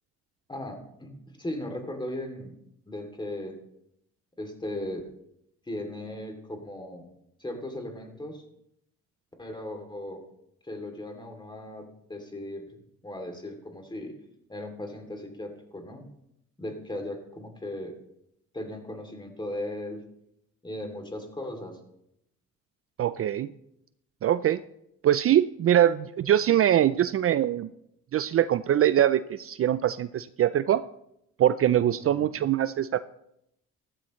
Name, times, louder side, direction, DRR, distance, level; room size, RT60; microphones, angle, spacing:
voice 1, 0.5-2.5 2.9-3.6 4.4-5.1 5.7-7.1 7.4-8.4 9.4-10.2 10.6-12.8 13.0-14.1 14.5-16.1 16.6-18.0 18.5-20.0 20.6-21.8 32.1-32.4, left 1 dB, 15° left, 5 dB, 2.8 m, -37 dB
voice 2, 23.0-23.5 24.2-24.6 25.0-27.7 28.1-30.8 31.4-33.0, right 11 dB, 50° right, 14 dB, 0.4 m, -23 dB
14.0 x 13.5 x 3.1 m, 0.78 s
cardioid pair, 90°, 30 cm